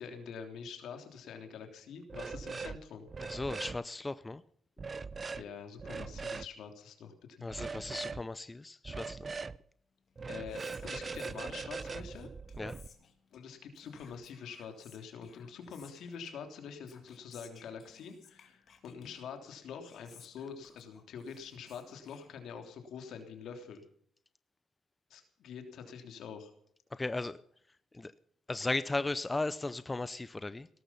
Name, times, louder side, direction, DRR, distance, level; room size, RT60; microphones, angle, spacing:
voice 1, 0.0-3.1 5.4-7.5 10.3-12.3 13.3-23.8 25.1-26.5, left 6 dB, 75° left, 6 dB, 3.3 m, -46 dB
sound 1, 2.1-2.8 3.1-3.8 4.8-5.4 5.8-6.5 7.5-8.2 8.8-9.6 10.2-12.9, right 4 dB, 35° right, 0.7 m, -40 dB
voice 2, 3.2-4.4 7.4-9.2 12.6-12.7 26.9-27.4 27.9-28.1 28.5-30.7, left 2 dB, 20° left, 15 dB, 0.6 m, -36 dB
Whispering, 10.0-22.9, left 7 dB, 55° left, 2.9 m, -61 dB
18.0 x 13.5 x 5.7 m, 0.64 s
cardioid pair, 90°, 0 cm